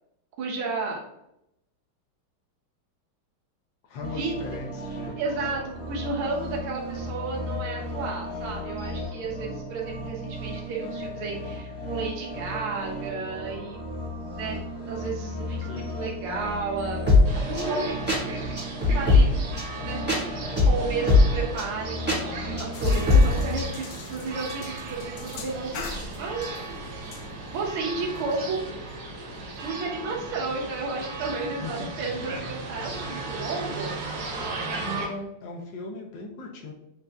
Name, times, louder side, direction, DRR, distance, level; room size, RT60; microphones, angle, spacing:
voice 1, 0.4-1.0 4.1-4.3 5.2-5.6 5.9-13.8 14.4-14.6 14.9-18.3 18.9-19.3 19.8-27.1 27.5-28.8 29.6-34.0, right 3 dB, 85° right, -2 dB, 1.7 m, -33 dB
voice 2, 3.9-5.5 15.6-15.9 31.6-31.9 34.8-36.7, left 2 dB, 70° left, 1 dB, 1.3 m, -38 dB
sound 1, 4.0-23.7, left 2 dB, 5° right, 0.9 m, -27 dB
nyc houston laguardia, 17.2-35.1, right 3 dB, 65° right, 1.4 m, -36 dB
sound 2, 22.7-29.7, left 5 dB, 85° left, 1.4 m, -44 dB
6.5 x 2.5 x 2.3 m, 0.82 s
omnidirectional pair, 2.3 m